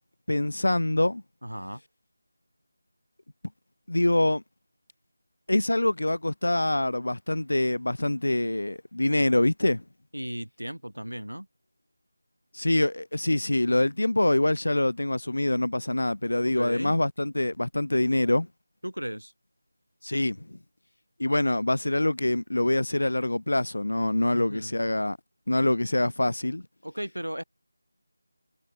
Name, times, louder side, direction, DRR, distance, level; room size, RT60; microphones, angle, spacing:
voice 1, 0.3-1.2 3.9-4.4 5.5-9.8 12.5-18.5 20.0-20.6 21.2-25.2 25.5-26.6, left 1 dB, 65° left, 1.2 m, -25 dB
voice 2, 1.4-1.8 10.1-11.5 16.5-16.9 18.8-19.3 24.3-24.7 26.8-27.4, equal, 85° right, 5.4 m, -35 dB
figure-of-eight pair, 165°, 0 cm